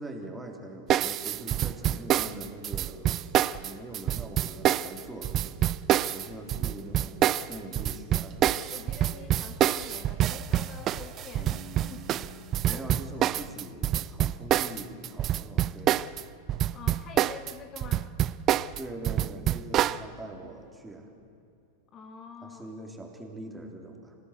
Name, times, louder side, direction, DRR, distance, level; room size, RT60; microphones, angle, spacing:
voice 1, 0.0-5.7 6.1-8.7 12.6-16.0 18.8-21.1 22.4-24.2, right 1 dB, 10° right, 2 dB, 3.6 m, -43 dB
sound 1, 0.9-16.2 16.5-20.0, right 12 dB, 30° right, 0.5 m, -26 dB
sound 2, 1.0-12.1, right 3 dB, 50° right, 4.1 m, -52 dB
voice 2, 8.6-11.6 11.9-12.0 12.7-12.8 16.7-18.1 21.9-22.7, left 6 dB, 30° left, 6 dB, 1.6 m, -45 dB
sound 3, 11.3-17.1, left 2 dB, 75° left, 6.0 m, -52 dB
27.5 x 17.5 x 8.2 m, 2.7 s
figure-of-eight pair, 90°, 0 cm